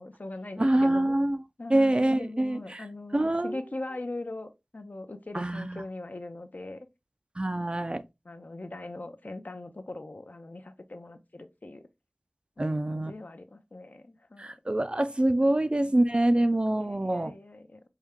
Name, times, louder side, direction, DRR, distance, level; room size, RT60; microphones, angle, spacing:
voice 1, 0.0-1.2 1.6-6.9 7.4-7.9 8.2-11.8 12.6-14.6 15.4-16.1 16.7-17.8, left 2 dB, 60° left, 0.6 m, -41 dB
voice 2, 0.6-1.4 1.7-2.8 3.1-3.6 5.3-5.8 7.4-8.0 12.6-13.1 14.4-17.3, right 1 dB, 30° right, 0.4 m, -25 dB
4.5 x 2.2 x 3.5 m
wide cardioid pair, 45°, 3 cm